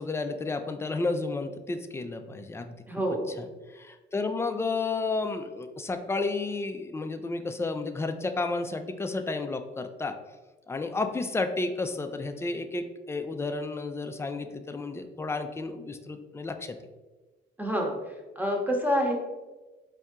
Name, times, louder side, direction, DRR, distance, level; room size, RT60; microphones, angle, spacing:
voice 1, 0.0-2.8 3.3-10.2 10.7-16.9, left 3 dB, 15° left, 7 dB, 0.3 m, -32 dB
voice 2, 2.9-3.3 17.6-18.0 18.4-19.1, equal, 10° right, 0 dB, 0.9 m, -27 dB
4.2 x 2.7 x 3.5 m, 1.2 s
cardioid pair, 90°, 20 cm